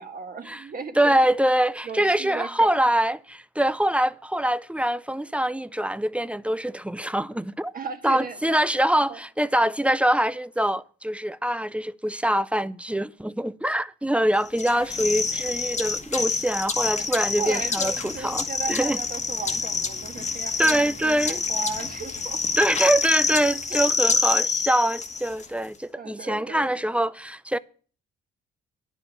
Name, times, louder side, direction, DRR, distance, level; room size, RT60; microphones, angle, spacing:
voice 1, 0.0-1.1 1.8-2.9 7.7-8.6 9.1-9.2 15.0-15.4 16.9-22.4 23.7-23.9 26.0-26.7, right 5 dB, 45° right, 1.9 m, -36 dB
voice 2, 1.0-7.7 8.0-19.0 20.6-21.4 22.6-27.6, right 1 dB, 5° right, 0.4 m, -24 dB
sound 1, 14.6-25.5, left 4 dB, 35° left, 1.4 m, -27 dB
10.5 x 5.5 x 8.2 m
cardioid pair, 90°, 20 cm